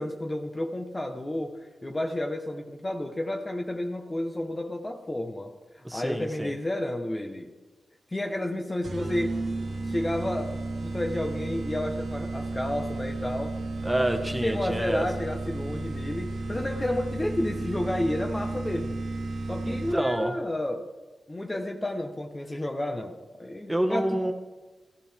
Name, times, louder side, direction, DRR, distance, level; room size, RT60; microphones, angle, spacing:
voice 1, 0.0-7.5 8.1-9.4 9.8-13.6 14.4-19.0 19.5-20.8 21.3-24.3, left 1 dB, 25° left, 4 dB, 1.1 m, -31 dB
voice 2, 5.8-6.5 13.8-15.0 19.6-20.4 23.7-24.3, right 1 dB, 10° right, 5 dB, 1.4 m, -28 dB
sound 1, 8.8-20.2, right 2 dB, 75° right, 1.5 m, -33 dB
15.0 x 11.0 x 3.5 m, 1.2 s
cardioid pair, 45°, 0 cm